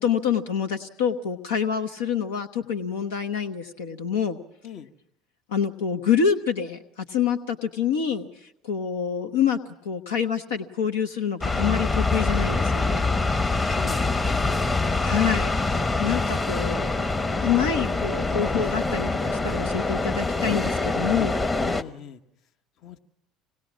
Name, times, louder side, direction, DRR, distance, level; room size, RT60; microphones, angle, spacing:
voice 1, 0.0-4.4 5.5-13.0 15.0-17.1 17.4-21.4, left 7 dB, 80° left, 5 dB, 1.0 m, -27 dB
sound 1, 11.4-21.8, left 3 dB, 20° left, 1.1 m, -25 dB
voice 2, 13.4-14.4 21.6-22.2 22.8-23.0, left 8 dB, 55° left, 7 dB, 1.2 m, -41 dB
25.5 x 19.0 x 6.2 m, 0.83 s
hypercardioid pair, 70°, 0 cm